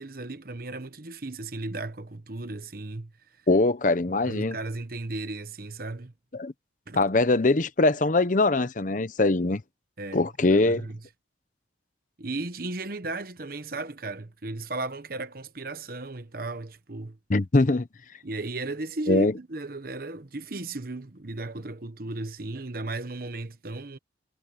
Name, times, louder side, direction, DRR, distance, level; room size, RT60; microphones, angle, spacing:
voice 1, 0.0-3.1 4.2-6.1 6.9-7.1 10.0-11.0 12.2-17.2 18.2-24.0, right 2 dB, 50° right, 1.2 m, -35 dB
voice 2, 3.5-4.6 6.3-6.5 6.9-9.6 10.1-10.9 17.3-17.9 19.1-19.3, left 2 dB, 45° left, 0.8 m, -22 dB
head